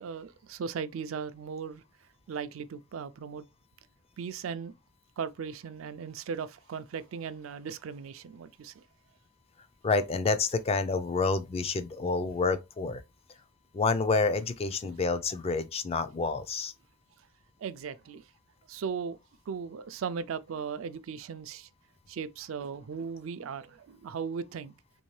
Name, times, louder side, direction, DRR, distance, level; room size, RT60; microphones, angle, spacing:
voice 1, 0.0-3.5 4.2-4.7 5.2-8.8 17.6-18.3 18.7-19.2 19.5-21.7 22.1-24.7, right 6 dB, 75° right, 0.4 m, -37 dB
voice 2, 9.8-13.0 13.7-16.7, left 4 dB, 30° left, 0.3 m, -28 dB
3.5 x 2.6 x 3.1 m
head